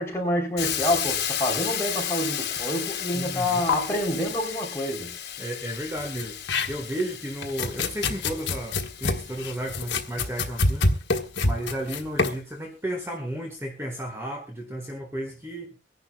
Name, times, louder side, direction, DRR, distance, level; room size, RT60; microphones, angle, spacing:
voice 1, 0.0-5.2, left 1 dB, 15° left, 3.4 m, -27 dB
Hiss, 0.6-10.5, left 9 dB, 65° left, 2.5 m, -33 dB
voice 2, 3.1-3.6 5.4-6.4 6.7-10.9 11.4-15.7, right 1 dB, 15° right, 1.5 m, -33 dB
sound 1, 3.4-3.5 3.7-3.8 6.0-7.0 7.4-12.4, left 3 dB, 85° left, 1.3 m, -26 dB
24.0 x 11.0 x 2.3 m
head